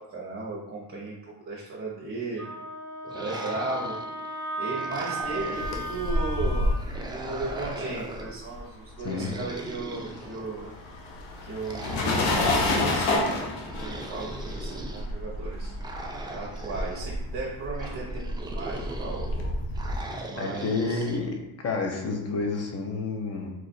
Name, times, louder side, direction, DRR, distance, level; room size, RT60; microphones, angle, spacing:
voice 1, 0.0-2.5 3.1-10.7 11.4-16.0 16.3-19.6 20.3-21.0, right 2 dB, 30° right, -4 dB, 0.8 m, -36 dB
Wind instrument woodwind instrument, 2.4-6.8, right 1 dB, 5° left, 1.3 m, -35 dB
sound 1, 3.0-4.3 4.7-6.2 6.8-8.4 9.0-10.7 11.6-13.0 13.7-15.1 15.8-17.1 17.8-19.3 19.7-21.2, right 2 dB, 10° right, 0.3 m, -40 dB
sound 2, 5.4-9.0 9.3-20.0, left 1 dB, 85° left, 0.8 m, -30 dB
voice 2, 20.4-23.5, left 3 dB, 35° left, 2 dB, 0.8 m, -30 dB
3.0 x 2.5 x 4.2 m, 0.93 s
cardioid pair, 95°, 45 cm